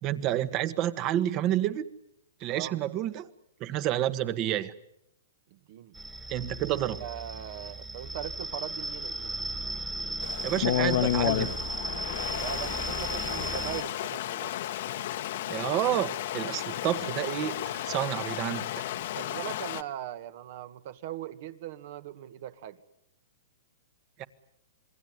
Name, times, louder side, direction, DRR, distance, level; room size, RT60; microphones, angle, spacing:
voice 1, 0.0-1.9 2.4-3.3 3.6-4.7 6.3-7.0 10.4-11.5 15.5-18.7 24.2-24.3, right 12 dB, 35° right, 14 dB, 1.5 m, -29 dB
voice 2, 5.5-6.0 7.0-9.3 12.3-14.6 19.1-22.8, right 12 dB, 55° right, 11 dB, 1.8 m, -40 dB
sound 1, 5.9-13.8, right 2 dB, 10° right, 1.9 m, -36 dB
Stream, 10.2-19.8, left 13 dB, 60° left, 1.4 m, -32 dB
27.5 x 22.0 x 9.6 m, 0.81 s
hypercardioid pair, 135°, 0 cm